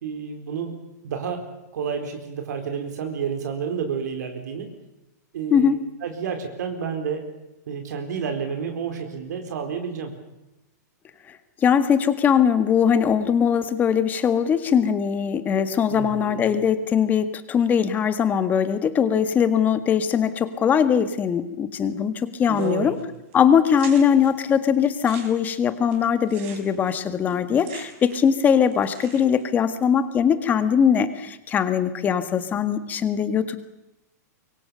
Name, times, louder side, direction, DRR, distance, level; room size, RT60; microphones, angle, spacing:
voice 1, 0.0-0.7 1.0-1.4 1.7-4.7 5.3-5.7 6.0-7.3 7.7-10.1 15.9-16.5 22.5-23.0, right 6 dB, 70° right, 5 dB, 4.2 m, -30 dB
voice 2, 11.6-22.9 23.3-33.6, left 7 dB, 20° left, 11 dB, 1.7 m, -21 dB
sound 1, 22.5-23.0 23.3-23.4 23.7-24.3 24.8-28.4 28.6-29.5, right 7 dB, 45° right, 6.0 m, -44 dB
25.5 x 23.0 x 6.9 m, 0.95 s
hypercardioid pair, 155°, 10 cm